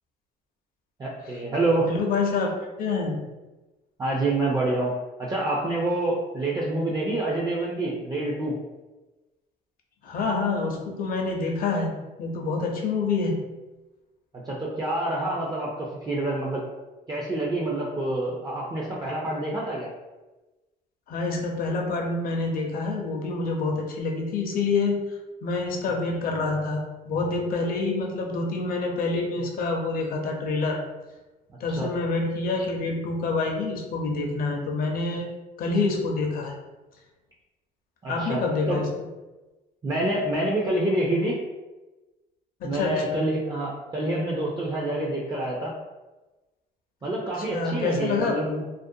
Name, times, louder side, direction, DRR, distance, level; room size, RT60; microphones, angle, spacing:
voice 1, 1.0-1.9 4.0-8.5 14.3-16.6 17.1-19.9 31.8-31.9 38.0-38.8 39.8-41.4 42.6-45.7 47.0-48.7, right 2 dB, 20° right, -4 dB, 0.4 m, -27 dB
voice 2, 1.9-3.2 10.0-13.4 21.1-25.0 25.4-30.8 31.6-35.3 35.6-36.6 38.1-38.9 42.6-43.3 47.5-48.6, left 3 dB, 60° left, 1 dB, 0.6 m, -27 dB
2.4 x 2.1 x 2.6 m, 1.1 s
cardioid pair, 110°, 17 cm